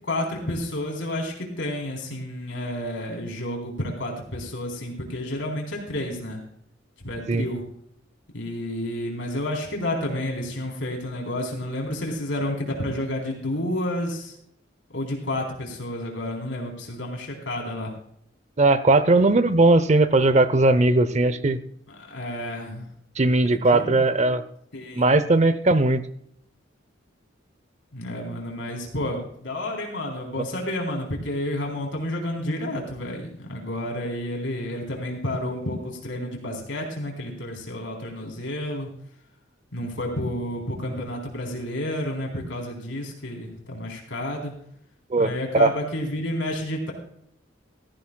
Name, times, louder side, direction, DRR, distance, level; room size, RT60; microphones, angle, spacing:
voice 1, 0.1-6.4 7.0-7.6 8.3-14.4 14.9-17.9 21.9-22.9 23.7-24.0 24.7-25.1 27.9-38.9 39.7-44.5 45.2-46.9, left 1 dB, 80° left, 0 dB, 3.7 m, -30 dB
voice 2, 18.6-21.6 23.2-24.4 25.0-26.0 45.1-45.3 45.6-45.7, right 2 dB, 40° right, 14 dB, 0.7 m, -18 dB
17.5 x 14.0 x 2.3 m, 0.70 s
head